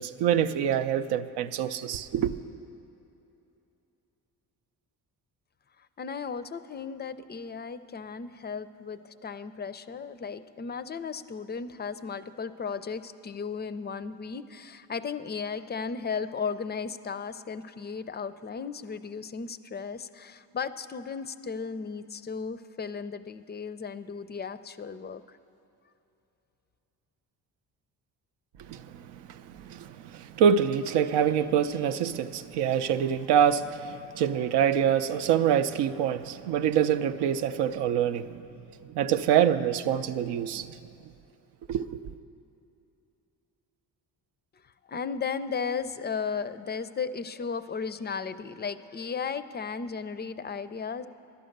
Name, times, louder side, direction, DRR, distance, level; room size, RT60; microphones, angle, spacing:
voice 1, 0.0-2.3 28.7-38.4 38.8-40.8 41.7-42.0, right 8 dB, 85° right, 0.6 m, -26 dB
voice 2, 5.8-25.4 44.6-51.1, left 5 dB, 25° left, 0.4 m, -35 dB
11.5 x 9.1 x 6.5 m
cardioid pair, 80°, 40 cm